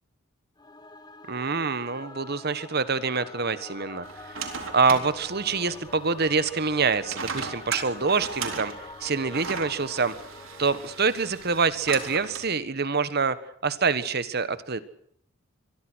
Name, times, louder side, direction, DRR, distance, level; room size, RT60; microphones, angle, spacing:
Singing / Musical instrument, 0.6-11.9, left 2 dB, 20° left, 1.4 m, -45 dB
voice 1, 1.3-4.4 4.7-8.7 9.0-10.1 10.6-13.4 13.6-14.8, right 4 dB, 50° right, 14 dB, 1.3 m, -26 dB
sound 1, 4.0-12.5, right 5 dB, 85° right, 3.7 m, -38 dB
25.0 x 22.5 x 6.3 m, 0.66 s
head